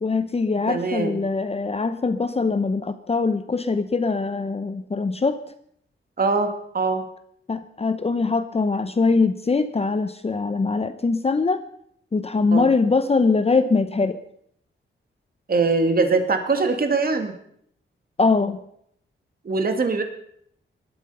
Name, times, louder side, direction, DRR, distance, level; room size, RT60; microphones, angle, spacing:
voice 1, 0.0-5.4 7.5-11.6 12.1-14.2 18.2-18.6, left 4 dB, 30° left, 10 dB, 0.9 m, -22 dB
voice 2, 0.7-1.2 6.2-7.1 12.5-12.7 15.5-17.3 19.4-20.0, right 4 dB, 45° right, 7 dB, 2.1 m, -22 dB
20.5 x 12.0 x 5.5 m, 0.68 s
wide cardioid pair, 125°, 21 cm